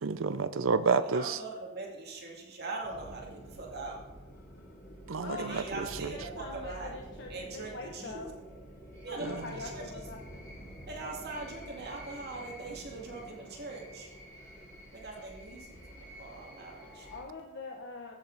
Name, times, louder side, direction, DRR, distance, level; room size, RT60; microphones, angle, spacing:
voice 1, 0.0-1.4 5.1-6.1 9.2-9.3, right 4 dB, 75° right, 14 dB, 0.6 m, -30 dB
voice 2, 1.1-4.0 5.4-6.9 7.3-8.3 9.0-10.0 10.9-14.1 14.9-17.1, right 3 dB, 55° right, -1 dB, 2.2 m, -41 dB
sound 1, 2.8-17.2, equal, 15° left, 3.5 m, -48 dB
voice 3, 5.2-8.3 9.1-10.4 17.1-18.2, left 3 dB, 60° left, 0 dB, 1.0 m, -44 dB
14.5 x 7.5 x 4.0 m, 1.1 s
head